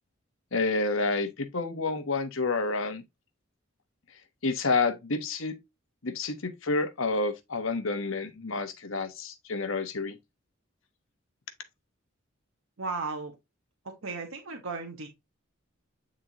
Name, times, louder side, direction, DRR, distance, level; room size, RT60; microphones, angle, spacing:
voice 1, 0.5-3.0 4.4-5.6 6.0-10.2, left 3 dB, 70° left, 1.1 m, -29 dB
voice 2, 12.8-13.3 14.0-15.1, right 4 dB, 75° right, 1.4 m, -35 dB
8.8 x 3.8 x 2.9 m
head